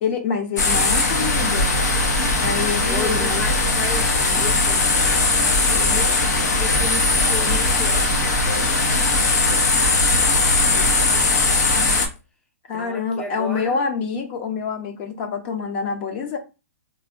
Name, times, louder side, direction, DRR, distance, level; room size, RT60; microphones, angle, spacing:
voice 1, 0.0-1.8 2.4-3.4 12.7-16.4, left 5 dB, 40° left, 0.7 m, -26 dB
sound 1, 0.6-12.1, left 3 dB, 80° left, 1.0 m, -19 dB
voice 2, 2.6-6.2 6.6-10.9 12.7-13.9, left 2 dB, 10° left, 0.6 m, -35 dB
3.1 x 2.6 x 2.6 m
hypercardioid pair, 140°, 9 cm